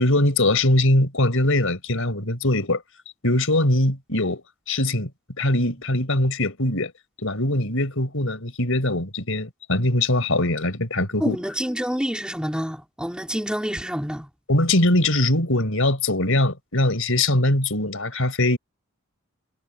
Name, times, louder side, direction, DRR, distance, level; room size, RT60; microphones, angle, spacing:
voice 1, 0.0-2.8 3.2-5.1 5.4-6.9 7.2-11.4 14.5-18.6, left 1 dB, 70° left, 6.4 m, -22 dB
voice 2, 11.2-14.3, equal, 5° right, 5.2 m, -27 dB
head